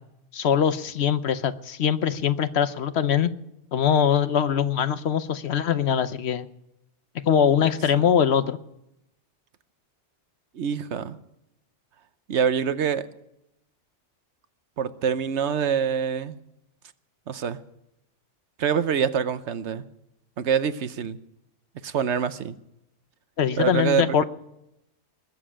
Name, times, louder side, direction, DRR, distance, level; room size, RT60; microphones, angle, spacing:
voice 1, 0.3-3.3 3.7-6.5 7.3-8.6 23.4-24.2, left 8 dB, 65° left, 13 dB, 1.0 m, -22 dB
voice 2, 10.5-11.2 12.3-13.1 14.8-16.4 17.3-17.6 18.6-19.8 20.4-21.2 21.8-22.6 23.6-24.2, right 7 dB, 70° right, 13 dB, 1.1 m, -25 dB
20.5 x 7.4 x 8.7 m, 0.84 s
omnidirectional pair, 1.2 m